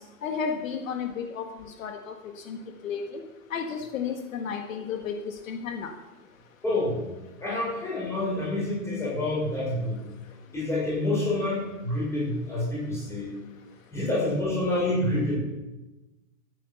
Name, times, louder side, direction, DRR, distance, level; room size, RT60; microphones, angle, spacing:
voice 1, 0.2-1.5 1.8-2.1 2.5-2.6 2.8-3.0 3.5-5.9, left 6 dB, 65° left, 4 dB, 1.7 m, -32 dB
voice 2, 6.6-7.0 7.4-10.0 10.5-13.3 13.9-15.4, left 1 dB, 5° left, -7 dB, 6.5 m, -27 dB
13.0 x 10.0 x 6.9 m, 1.1 s
hypercardioid pair, 160°, 44 cm